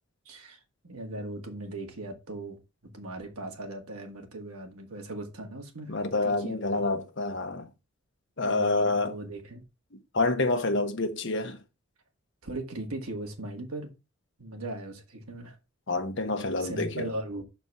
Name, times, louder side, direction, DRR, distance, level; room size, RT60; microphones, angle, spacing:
voice 1, 0.3-2.6 2.9-5.9 6.2-6.9 8.4-9.6 12.4-13.9 14.4-15.6 16.6-17.4, right 2 dB, 85° right, 1.9 m, -38 dB
voice 2, 5.9-7.7 8.4-9.2 10.1-11.6 15.9-17.1, left 2 dB, 55° left, 1.1 m, -27 dB
6.1 x 4.4 x 5.5 m
head